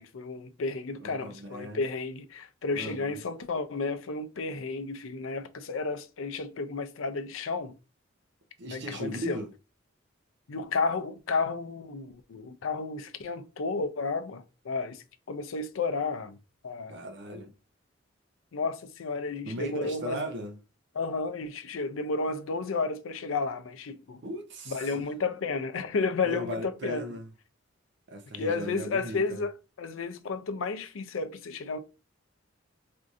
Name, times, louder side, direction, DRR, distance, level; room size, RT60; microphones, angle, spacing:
voice 1, 0.0-7.7 8.7-9.4 10.5-16.4 16.6-17.0 18.5-20.2 20.9-24.2 24.7-27.0 28.3-31.8, left 4 dB, 85° left, 0.5 m, -32 dB
voice 2, 1.0-1.8 2.7-3.2 8.6-9.5 16.9-17.5 19.4-20.6 24.2-25.0 26.2-27.3 28.1-29.4, right 1 dB, 65° right, 0.7 m, -37 dB
4.4 x 2.6 x 2.5 m
head